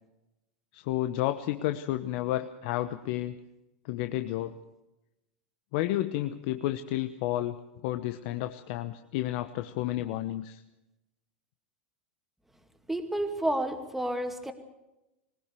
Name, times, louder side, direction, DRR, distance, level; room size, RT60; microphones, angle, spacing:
voice 1, 0.7-3.4 3.8-4.6 5.7-7.6 7.8-10.6, left 14 dB, 60° left, 8 dB, 0.9 m, -31 dB
voice 2, 12.9-14.5, right 1 dB, 5° right, 5 dB, 2.3 m, -30 dB
20.0 x 19.0 x 6.9 m, 0.95 s
hypercardioid pair, 110°, 6 cm